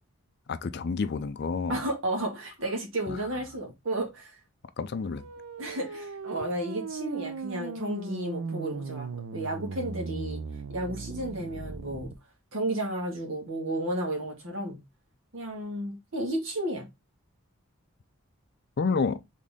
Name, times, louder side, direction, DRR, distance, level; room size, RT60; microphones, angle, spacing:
voice 1, 0.5-1.8 3.1-3.2 4.8-5.2 18.8-19.2, left 4 dB, 50° left, 0.4 m, -29 dB
voice 2, 1.7-4.3 5.6-10.4 10.7-12.1 12.5-14.8 15.3-16.9, right 1 dB, 60° right, 1.8 m, -32 dB
sound 1, 5.0-12.1, right 4 dB, 85° right, 0.5 m, -37 dB
4.1 x 3.7 x 3.6 m
head